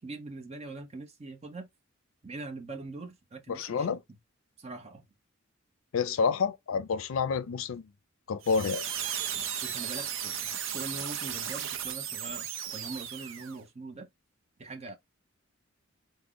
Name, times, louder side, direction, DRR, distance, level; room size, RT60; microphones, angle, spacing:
voice 1, 0.0-1.7 2.2-4.0 4.6-5.0 9.6-10.4 10.7-14.1 14.6-15.0, right 3 dB, 30° right, 0.7 m, -42 dB
voice 2, 3.5-4.0 5.9-7.8 8.3-8.9, left 5 dB, 75° left, 0.4 m, -29 dB
sound 1, 8.4-13.6, right 9 dB, 70° right, 0.5 m, -35 dB
3.5 x 2.1 x 3.6 m
head